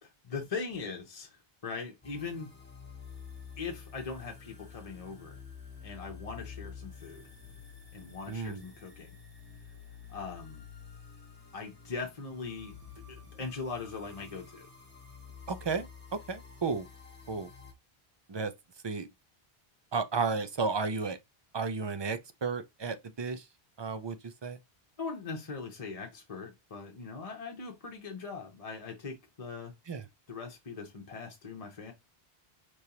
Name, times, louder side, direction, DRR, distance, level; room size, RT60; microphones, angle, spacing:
voice 1, 0.0-2.5 3.6-5.4 5.8-7.2 7.9-9.1 10.1-10.6 11.5-12.8 13.1-14.7 25.0-29.7 30.3-31.9, left 4 dB, 40° left, 0.8 m, -40 dB
sound 1, 2.0-17.7, left 6 dB, 10° left, 1.4 m, -50 dB
voice 2, 8.3-8.6 15.5-15.9 16.1-16.9 17.3-17.5 18.3-18.5 18.8-19.1 19.9-21.2 21.5-23.5 23.8-24.6 29.9-30.0, right 4 dB, 40° right, 0.4 m, -33 dB
5.2 x 3.1 x 2.9 m
omnidirectional pair, 1.0 m